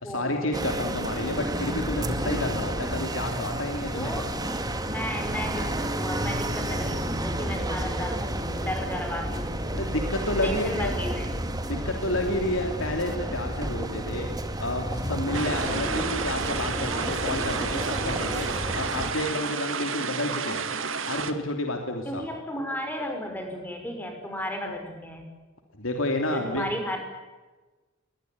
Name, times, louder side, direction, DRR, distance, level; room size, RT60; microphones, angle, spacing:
voice 1, 0.0-4.1 9.7-10.9 11.6-14.3 14.6-18.5 18.7-20.6 21.1-22.2 25.8-26.7, left 1 dB, 85° left, 4 dB, 3.0 m, -30 dB
sound 1, 0.5-19.1, right 1 dB, 20° right, 2.3 m, -31 dB
voice 2, 3.9-4.3 4.8-9.7 10.4-11.3 22.1-25.3 26.3-27.0, left 1 dB, 10° left, 4 dB, 5.8 m, -34 dB
sound 2, 15.3-21.3, right 5 dB, 75° right, 2.2 m, -31 dB
22.0 x 20.5 x 9.5 m, 1.2 s
head